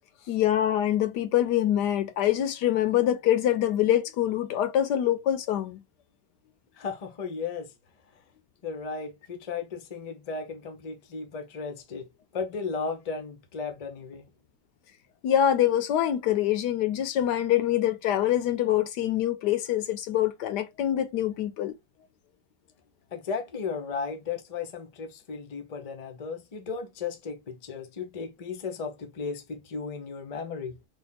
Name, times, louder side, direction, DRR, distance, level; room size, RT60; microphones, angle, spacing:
voice 1, 0.3-5.8 15.2-21.7, left 11 dB, 80° left, 1.2 m, -25 dB
voice 2, 6.8-7.7 8.6-14.3 23.1-30.8, left 5 dB, 45° left, 0.5 m, -35 dB
3.4 x 2.3 x 4.0 m
omnidirectional pair, 1.9 m